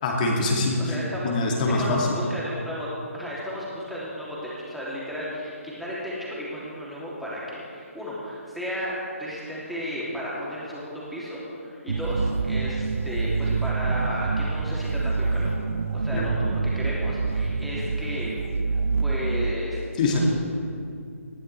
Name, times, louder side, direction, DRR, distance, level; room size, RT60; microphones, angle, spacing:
voice 1, 0.0-0.9 1.2-2.1 16.1-16.2 20.0-20.3, left 2 dB, 35° left, -1 dB, 2.5 m, -23 dB
voice 2, 0.8-1.3 1.8-2.9 3.1-15.5 15.9-18.3 19.0-19.8 20.0-20.3, equal, ahead, -8 dB, 3.0 m, -34 dB
sound 1, 11.9-19.5, right 4 dB, 65° right, 0.6 m, -26 dB
20.0 x 14.5 x 3.4 m, 2.5 s
figure-of-eight pair, 145°, 8 cm